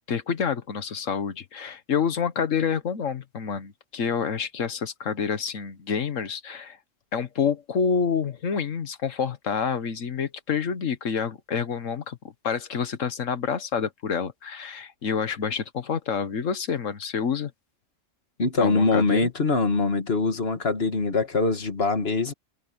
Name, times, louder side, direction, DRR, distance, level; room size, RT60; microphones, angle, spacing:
voice 1, 0.1-6.8 7.1-17.5 18.6-19.3, left 6 dB, 85° left, 1.6 m, -28 dB
voice 2, 18.4-22.3, left 3 dB, 50° left, 2.1 m, -23 dB
omnidirectional pair, 1.3 m